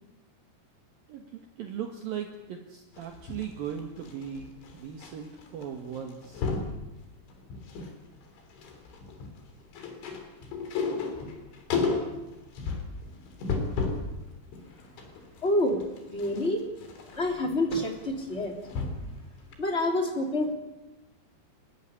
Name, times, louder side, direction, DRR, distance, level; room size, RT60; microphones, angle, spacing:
voice 1, 1.1-6.4, right 8 dB, 60° right, 3 dB, 3.0 m, -38 dB
sound 1, 3.0-5.1 5.4-5.6 5.9-6.7 7.3-7.9 8.2-14.1 14.5-19.2 19.5-19.6, left 4 dB, 90° left, 5.8 m, -33 dB
voice 2, 15.4-15.8 16.1-16.7 17.1-18.5 19.6-20.5, left 1 dB, 15° left, 3 dB, 2.6 m, -27 dB
29.5 x 13.5 x 10.0 m, 1.0 s
omnidirectional pair, 5.2 m